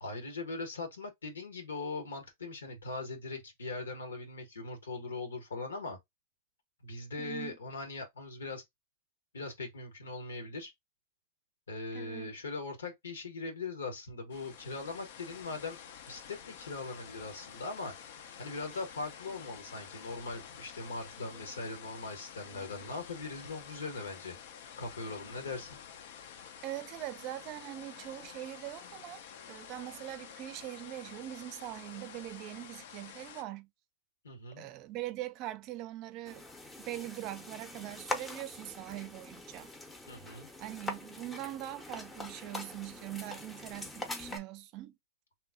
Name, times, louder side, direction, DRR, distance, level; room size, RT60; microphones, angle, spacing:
voice 1, 0.0-6.0 6.8-8.6 9.3-10.7 11.7-15.8 16.1-17.9 18.4-24.4 24.8-25.8 34.2-34.7 40.1-40.5, left 3 dB, 85° left, 1.1 m, -40 dB
voice 2, 7.2-7.6 11.9-12.3 26.6-29.2 29.5-33.7 34.6-36.5 36.8-39.7 40.6-44.9, right 14 dB, 45° right, 0.5 m, -42 dB
sound 1, 14.3-33.4, left 8 dB, 65° left, 0.5 m, -50 dB
sound 2, 36.3-44.4, left 2 dB, 10° left, 0.7 m, -43 dB
3.0 x 2.0 x 3.6 m
hypercardioid pair, 105°, 0 cm